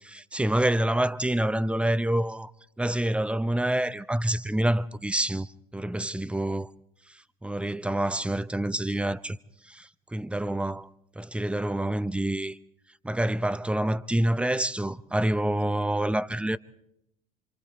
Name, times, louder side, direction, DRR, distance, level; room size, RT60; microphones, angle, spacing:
voice 1, 0.1-2.5 2.8-6.7 7.4-9.4 9.6-10.9 11.2-12.6 13.0-16.6, right 1 dB, 5° right, 0.8 m, -27 dB
27.5 x 26.5 x 3.8 m
hypercardioid pair, 65°, 20 cm